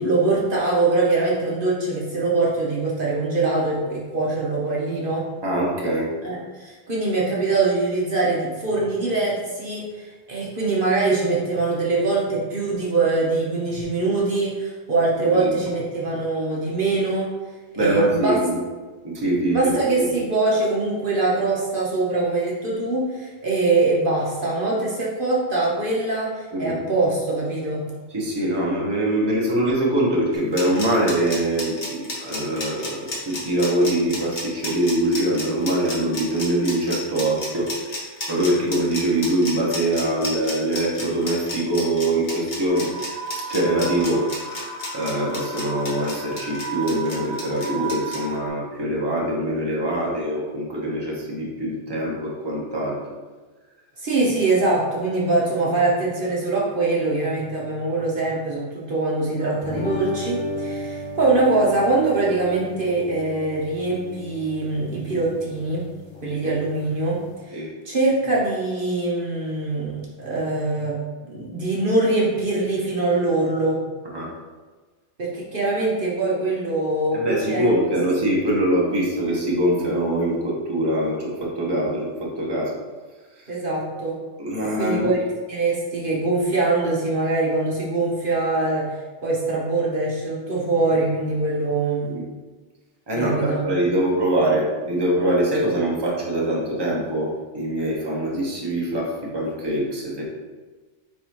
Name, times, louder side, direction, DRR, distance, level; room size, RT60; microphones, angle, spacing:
voice 1, 0.0-5.2 6.2-17.3 17.8-18.4 19.5-27.8 54.0-65.8 66.2-71.0 71.3-73.8 75.2-77.8 83.5-84.2 84.6-85.2 85.5-88.9 89.2-92.1 93.1-93.6, right 3 dB, 50° right, -4 dB, 1.2 m, -23 dB
voice 2, 5.4-6.1 15.2-15.5 17.8-18.6 19.0-20.1 26.5-26.8 28.1-32.9 33.3-37.7 38.3-42.9 43.5-44.3 44.9-53.0 66.4-66.5 67.5-67.7 74.1-74.3 77.1-82.8 83.4-83.5 84.4-85.2 92.0-92.2 93.1-97.3 97.5-100.2, right 1 dB, 20° right, -4 dB, 1.2 m, -23 dB
sound 1, 30.3-48.2, left 2 dB, 55° left, 1.5 m, -32 dB
sound 2, 42.7-48.5, right 4 dB, 65° right, 1.2 m, -34 dB
sound 3, 59.6-67.3, left 1 dB, 40° left, 0.4 m, -34 dB
9.0 x 3.5 x 3.0 m, 1.3 s
omnidirectional pair, 1.2 m